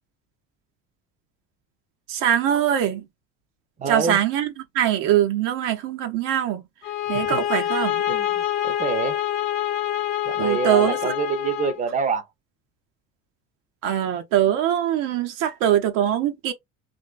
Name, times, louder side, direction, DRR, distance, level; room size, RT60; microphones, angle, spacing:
voice 1, 2.1-3.0 3.9-4.5 4.7-6.6 7.1-8.0 10.4-11.1 13.8-16.5, right 10 dB, 55° right, 0.6 m, -22 dB
voice 2, 3.8-4.2 7.2-7.4 8.1-9.2 10.3-12.3, right 5 dB, 20° right, 0.7 m, -27 dB
sound 1, 6.8-11.8, left 12 dB, 70° left, 0.8 m, -26 dB
2.9 x 2.7 x 2.4 m
hypercardioid pair, 70°, 39 cm